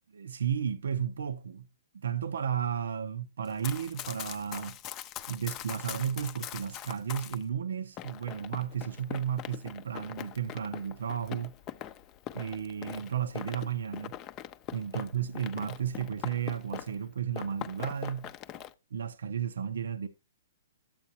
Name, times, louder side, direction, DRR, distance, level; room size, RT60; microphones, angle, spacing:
voice 1, 0.1-1.7 1.9-4.8 5.3-11.6 12.3-14.1 14.7-18.3 18.9-20.1, right 8 dB, 85° right, 0.8 m, -33 dB
Run, 3.4-7.4 8.0-17.1 17.3-18.7, left 11 dB, 25° left, 0.5 m, -42 dB
12.5 x 8.7 x 2.8 m
hypercardioid pair, 155°, 0 cm